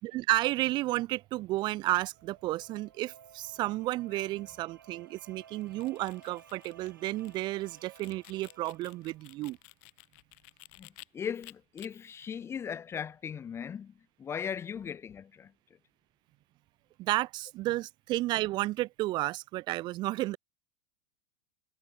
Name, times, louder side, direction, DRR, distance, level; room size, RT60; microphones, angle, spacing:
voice 1, 0.0-9.6 17.0-20.4, right 17 dB, 45° right, 1.0 m, -32 dB
sound 1, 1.7-9.5, right 8 dB, 85° right, 6.7 m, -57 dB
sound 2, 5.6-11.1 11.4-11.9, left 29 dB, 60° left, 4.3 m, -54 dB
voice 2, 10.8-13.9 14.2-15.5, left 7 dB, 25° left, 0.8 m, -38 dB
hypercardioid pair, 95°, 10 cm